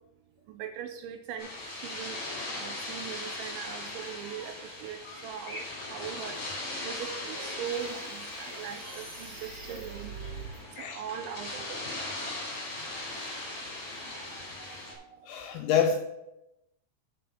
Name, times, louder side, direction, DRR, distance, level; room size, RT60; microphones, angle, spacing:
voice 1, 0.6-1.5 1.8-2.2 2.5-5.6 5.9-6.4 6.8-10.1 10.8-11.8 14.3-14.7 15.0-15.1, right 9 dB, 85° right, 6 dB, 2.7 m, -40 dB
sound 1, 1.4-14.9, left 2 dB, 35° left, 2.6 m, -39 dB
sound 2, 6.9-10.6, right 4 dB, 30° right, 1.6 m, -45 dB
voice 2, 15.2-16.0, left 7 dB, 90° left, 2 dB, 2.6 m, -27 dB
7.6 x 6.2 x 5.1 m, 0.87 s
omnidirectional pair, 5.8 m